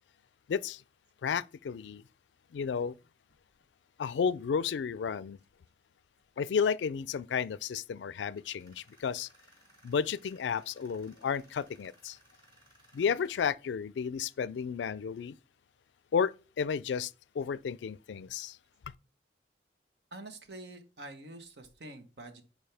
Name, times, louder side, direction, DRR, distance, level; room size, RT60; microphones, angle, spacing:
voice 1, 0.5-0.8 1.2-2.0 2.5-3.0 4.0-5.4 6.4-9.3 9.8-12.2 12.9-15.4 16.1-18.6, left 6 dB, 85° left, 0.4 m, -32 dB
Tools, 8.3-13.4, right 1 dB, 30° right, 4.4 m, -63 dB
voice 2, 20.1-22.4, right 2 dB, 75° right, 1.2 m, -46 dB
10.5 x 4.6 x 3.4 m
head